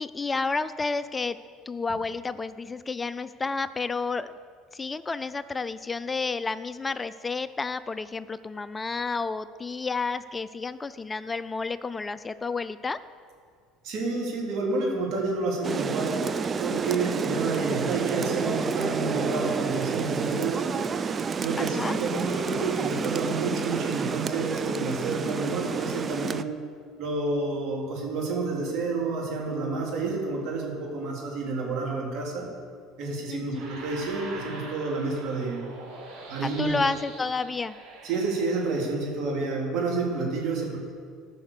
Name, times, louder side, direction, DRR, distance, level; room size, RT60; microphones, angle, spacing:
voice 1, 0.0-1.4 1.7-4.3 4.7-13.0 21.6-21.9 33.3-33.6 36.4-37.8, left 4 dB, 20° left, 14 dB, 0.4 m, -31 dB
voice 2, 13.8-16.2 16.6-20.6 21.4-26.5 27.0-32.5 33.0-35.7 36.3-36.8 38.0-40.8, right 3 dB, 60° right, -2 dB, 3.3 m, -29 dB
Rain, 15.6-26.4, right 5 dB, 35° right, 0.5 m, -29 dB
sound 1, 33.5-39.2, right 3 dB, 75° right, 3.4 m, -44 dB
14.5 x 5.7 x 6.7 m, 2.1 s
hypercardioid pair, 80°, 0 cm